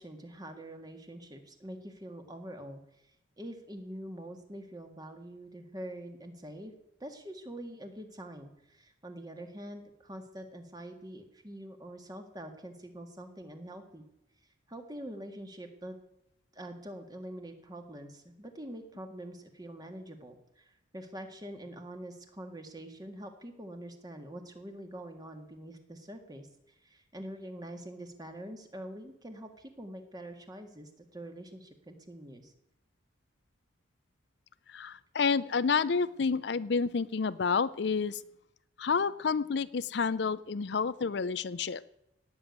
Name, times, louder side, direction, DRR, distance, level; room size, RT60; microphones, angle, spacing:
voice 1, 0.0-2.8 3.4-6.7 7.0-14.0 14.7-16.0 16.5-26.5 26.8-32.5, right 1 dB, 20° right, 6 dB, 1.8 m, -45 dB
voice 2, 34.7-38.2 38.8-41.9, left 5 dB, 60° left, 16 dB, 0.5 m, -29 dB
17.5 x 7.0 x 9.5 m, 0.84 s
head